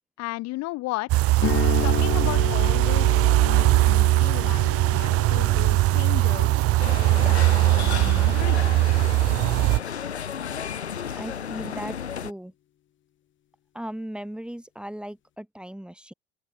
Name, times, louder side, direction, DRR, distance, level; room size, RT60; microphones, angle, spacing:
voice 1, 0.2-1.3 1.8-6.6 7.0-8.6, left 20 dB, 55° left, 2.4 m, -35 dB
sound 1, 1.1-9.8, right 19 dB, 45° right, 0.8 m, -20 dB
sound 2, 1.4-9.4, left 11 dB, 35° left, 1.4 m, -34 dB
sound 3, 6.8-12.3, left 8 dB, 85° left, 1.2 m, -33 dB
voice 2, 11.1-12.0 12.2-12.5 13.7-16.1, equal, 5° right, 2.3 m, -37 dB
open air
figure-of-eight pair, 70°, 32 cm